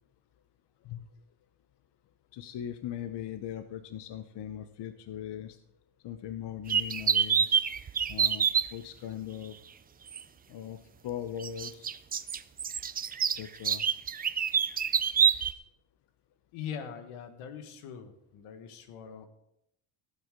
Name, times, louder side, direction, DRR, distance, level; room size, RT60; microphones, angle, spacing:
voice 1, 2.3-5.6 6.0-7.5 8.1-9.6 10.5-11.9 13.2-13.8, left 10 dB, 55° left, 10 dB, 0.9 m, -40 dB
sound 1, 6.7-8.7 10.1-10.2 11.4-15.5, right 7 dB, 20° right, 0.3 m, -26 dB
voice 2, 16.5-19.3, left 7 dB, 85° left, 8 dB, 1.7 m, -42 dB
17.5 x 8.2 x 3.8 m, 0.78 s
cardioid pair, 100°, 49 cm